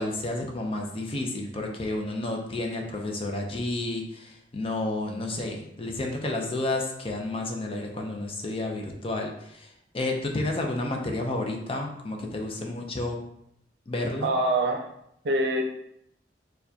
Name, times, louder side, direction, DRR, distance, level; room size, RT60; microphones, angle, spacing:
voice 1, 0.0-13.2 13.9-14.3, left 2 dB, 30° left, 2 dB, 0.5 m, -31 dB
voice 2, 14.2-14.9 15.2-15.6, right 1 dB, 70° right, 4 dB, 0.5 m, -24 dB
4.5 x 2.2 x 2.7 m, 0.75 s
head